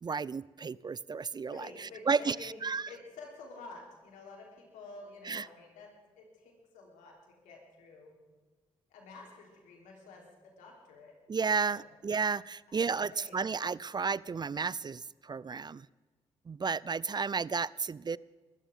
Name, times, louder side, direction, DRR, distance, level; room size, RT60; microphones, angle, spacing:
voice 1, 0.0-2.9 5.2-5.5 11.3-15.9 16.5-18.2, right 5 dB, 35° right, 22 dB, 0.4 m, -33 dB
voice 2, 1.5-2.6 2.9-5.9 6.2-8.1 8.9-11.1 11.6-11.9 12.7-12.8 13.1-13.4, left 3 dB, 85° left, 0 dB, 3.6 m, -50 dB
21.5 x 14.0 x 3.7 m, 1.3 s
supercardioid pair, 45°, 13 cm